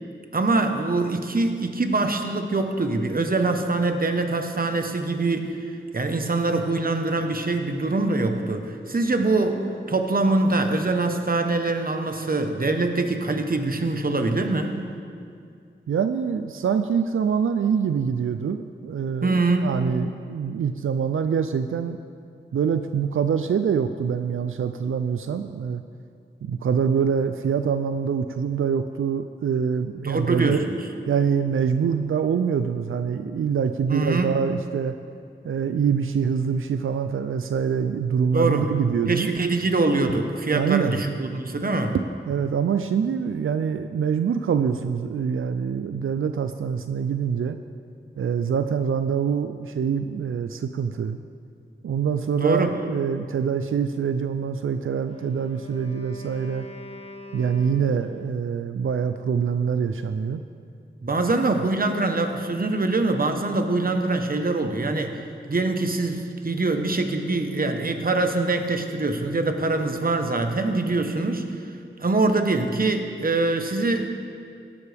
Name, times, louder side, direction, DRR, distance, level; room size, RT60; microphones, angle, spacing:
voice 1, 0.3-14.8 19.2-19.8 30.0-30.8 33.9-34.3 38.3-38.7 39.1-41.9 52.4-52.7 61.0-65.2 65.5-71.7 72.0-74.1, right 2 dB, 45° right, 6 dB, 1.1 m, -24 dB
voice 2, 15.9-22.0 22.5-25.8 26.4-30.7 31.1-35.0 35.4-39.3 40.5-41.0 42.3-47.6 48.2-51.2 51.8-56.7 57.3-60.4 61.5-61.6, right 7 dB, 90° right, 9 dB, 0.4 m, -25 dB
Wind instrument woodwind instrument, 55.0-58.5, left 2 dB, 30° left, 1.0 m, -42 dB
17.0 x 11.5 x 3.5 m, 2.4 s
wide cardioid pair, 70°, 20 cm